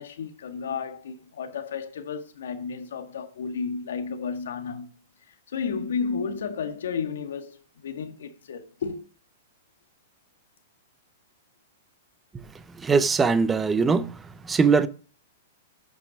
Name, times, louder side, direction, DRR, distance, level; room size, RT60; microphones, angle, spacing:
voice 1, 0.0-4.9 5.3-9.0, left 5 dB, 80° left, 1.6 m, -32 dB
voice 2, 12.8-14.1 14.4-14.9, right 5 dB, 10° right, 0.5 m, -21 dB
8.4 x 5.9 x 6.0 m
hypercardioid pair, 145°, 0 cm